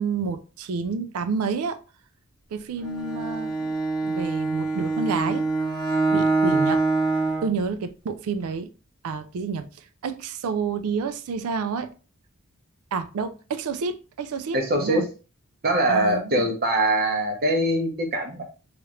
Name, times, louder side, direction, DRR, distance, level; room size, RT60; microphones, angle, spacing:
voice 1, 0.0-1.8 2.5-3.7 4.0-5.5 6.1-6.8 7.4-8.7 9.0-11.9 12.9-15.1 15.9-16.5, right 5 dB, 80° right, 0.4 m, -29 dB
Bowed string instrument, 2.8-7.6, right 3 dB, 15° left, 0.9 m, -24 dB
voice 2, 14.5-15.1 15.6-18.4, right 1 dB, 45° right, 0.7 m, -23 dB
3.1 x 2.4 x 2.9 m
head